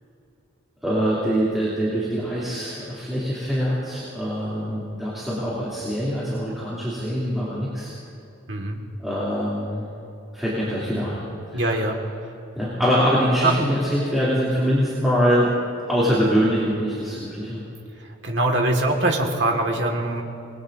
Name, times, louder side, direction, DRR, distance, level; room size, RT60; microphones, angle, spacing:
voice 1, 0.8-7.9 9.0-9.9 10.3-11.2 11.5-11.8 12.5-15.5 15.9-17.6, equal, ahead, -10 dB, 2.9 m, -23 dB
voice 2, 8.5-8.8 11.5-12.0 13.4-13.6 18.2-20.2, right 2 dB, 60° right, 2 dB, 1.9 m, -22 dB
26.0 x 21.0 x 2.7 m, 2.7 s
head